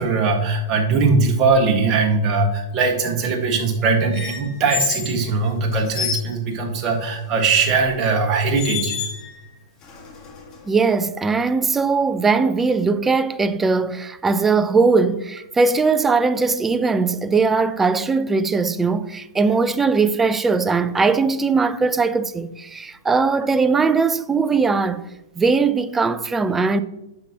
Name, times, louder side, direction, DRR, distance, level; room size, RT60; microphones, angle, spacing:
voice 1, 0.0-9.0, right 4 dB, 30° right, 1.6 m, -20 dB
sound 1, 4.1-5.1 5.7-6.3 7.7-7.8 8.5-9.4 9.8-10.7, left 6 dB, 30° left, 1.6 m, -29 dB
voice 2, 10.7-25.0 25.4-26.8, right 4 dB, 10° right, 0.4 m, -20 dB
8.8 x 5.9 x 2.9 m
hypercardioid pair, 115°, 2 cm